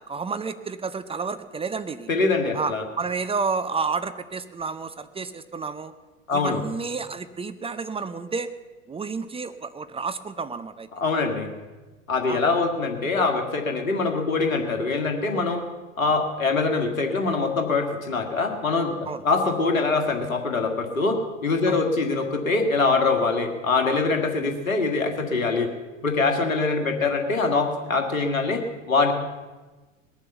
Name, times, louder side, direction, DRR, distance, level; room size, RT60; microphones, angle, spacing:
voice 1, 0.1-2.1 2.5-5.9 6.3-8.5 8.9-10.9 12.3-12.6 19.1-19.2 21.7-21.8, right 4 dB, 15° right, 11 dB, 0.6 m, -30 dB
voice 2, 2.1-2.8 6.3-6.6 11.0-11.5 12.1-15.7 16.0-18.9 19.2-25.7 26.0-29.1, left 3 dB, 90° left, 4 dB, 2.0 m, -23 dB
20.5 x 7.3 x 6.9 m, 1.3 s
hypercardioid pair, 85°, 39 cm